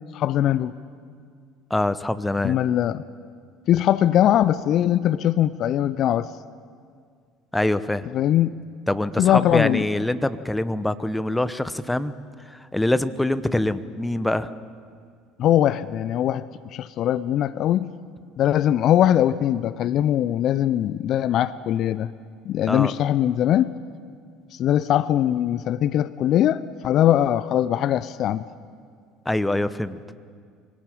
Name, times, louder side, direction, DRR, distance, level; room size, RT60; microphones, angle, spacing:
voice 1, 0.1-0.7 2.4-3.0 3.7-6.3 8.1-8.6 9.2-9.8 15.4-16.4 16.7-17.9 18.4-22.1 22.5-23.7 24.5-28.5, left 11 dB, 50° left, 17 dB, 0.5 m, -21 dB
voice 2, 1.7-2.6 7.5-8.1 8.9-12.1 12.5-14.5 22.7-22.9 29.2-30.0, left 1 dB, 10° left, 14 dB, 1.0 m, -24 dB
23.5 x 18.0 x 8.8 m, 2.1 s
figure-of-eight pair, 60°, 0 cm